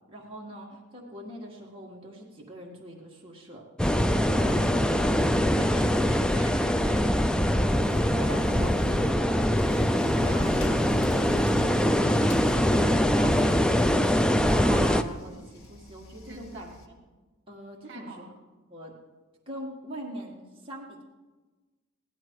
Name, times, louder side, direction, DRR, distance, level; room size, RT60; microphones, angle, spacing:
voice 1, 0.1-3.6 5.8-6.2 8.0-17.0 17.5-18.3 18.7-18.9 19.5-21.0, right 1 dB, 25° right, -3 dB, 1.8 m, -42 dB
sound 1, 3.8-15.0, equal, 5° left, 0.4 m, -23 dB
voice 2, 4.3-7.9 16.2-16.7 17.8-18.3, right 2 dB, 55° right, 3 dB, 2.0 m, -44 dB
sound 2, 7.7-9.2 9.6-12.7 13.0-16.9, left 1 dB, 80° left, 1.7 m, -38 dB
16.0 x 11.5 x 4.7 m, 1.2 s
head